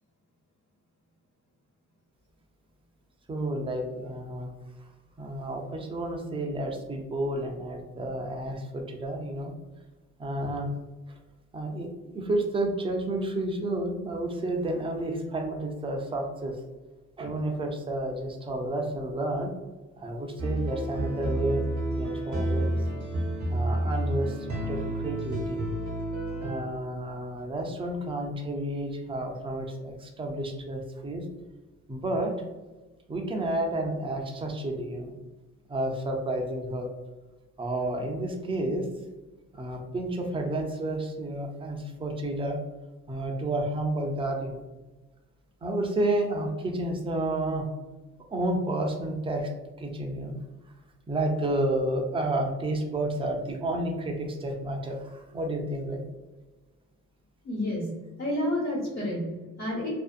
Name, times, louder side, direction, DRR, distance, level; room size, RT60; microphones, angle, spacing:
voice 1, 3.3-4.5 5.2-9.5 10.2-10.7 11.5-16.6 17.2-19.5 20.0-21.6 21.9-22.8 23.5-24.4 24.7-25.6 26.4-31.2 31.9-32.3 33.1-35.1 35.7-36.9 37.6-38.9 39.5-42.6 43.1-44.6 45.6-47.7 48.3-49.5 49.8-50.4 51.1-56.0, right 1 dB, 20° right, 3 dB, 0.4 m, -31 dB
sound 1, 20.4-26.6, right 1 dB, 70° right, 0.9 m, -30 dB
voice 2, 57.4-59.9, left 1 dB, 60° left, -7 dB, 1.2 m, -30 dB
2.6 x 2.1 x 2.4 m, 1.2 s
cardioid pair, 90°, 30 cm